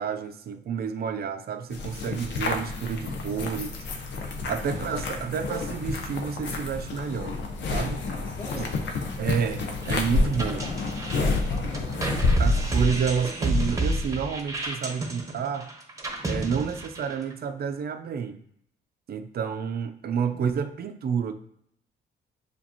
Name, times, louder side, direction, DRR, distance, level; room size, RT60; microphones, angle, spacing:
voice 1, 0.0-3.8 4.5-7.4 7.7-8.0 8.5-8.7 9.2-10.7 12.4-15.7 16.2-18.4 19.1-21.3, right 6 dB, 50° right, 0.6 m, -29 dB
sound 1, 1.7-12.8, left 3 dB, 65° left, 0.9 m, -29 dB
voice 2, 4.5-5.1 8.2-8.9 10.6-12.4 20.3-20.6, left 2 dB, 40° left, 1.8 m, -44 dB
sound 2, 9.8-17.3, right 1 dB, 15° right, 0.9 m, -29 dB
7.0 x 2.5 x 2.9 m
cardioid pair, 90°, 20 cm